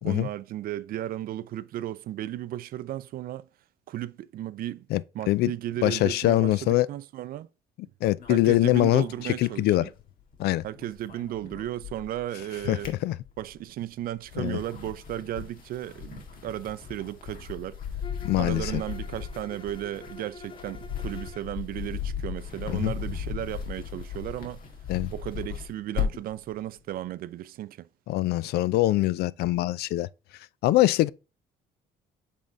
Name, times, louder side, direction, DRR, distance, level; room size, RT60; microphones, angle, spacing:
voice 1, 0.0-3.5 3.9-4.9 5.1-7.5 8.3-9.9 10.6-12.9 13.4-17.8 18.4-24.6 25.1-27.9, right 13 dB, 60° right, 0.4 m, -35 dB
voice 2, 5.8-6.9 8.0-9.8 10.4-10.6 12.7-13.1 14.4-14.6 18.2-18.7 22.7-22.9 24.9-25.1 28.1-30.1 30.6-31.1, left 16 dB, 70° left, 0.4 m, -23 dB
sound 1, 8.2-10.4 10.6-12.2 12.6-13.6 14.2-26.4, left 7 dB, 55° left, 1.7 m, -37 dB
Bowed string instrument, 18.0-21.6, left 3 dB, 30° left, 0.6 m, -46 dB
7.4 x 3.6 x 3.8 m
cardioid pair, 110°, 17 cm